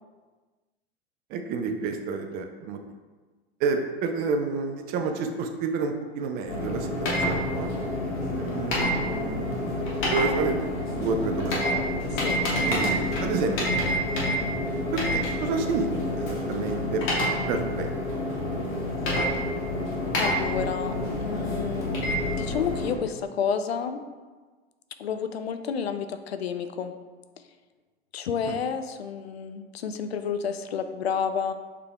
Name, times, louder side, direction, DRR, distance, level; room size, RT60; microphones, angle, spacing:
voice 1, 1.3-2.8 3.6-6.9 7.2-7.7 8.4-9.7 10.0-10.6 10.9-11.6 12.7-13.5 14.9-17.0 17.5-18.2 28.5-28.6, right 4 dB, 30° right, 5 dB, 0.4 m, -29 dB
sound 1, 6.5-22.9, left 1 dB, 40° left, 1.4 m, -28 dB
voice 2, 12.1-12.4 20.1-20.9 21.2-21.9 22.4-24.0 25.0-26.9 28.1-31.5, left 7 dB, 75° left, 8 dB, 0.4 m, -30 dB
6.6 x 3.3 x 2.2 m, 1.3 s
figure-of-eight pair, 85°, 31 cm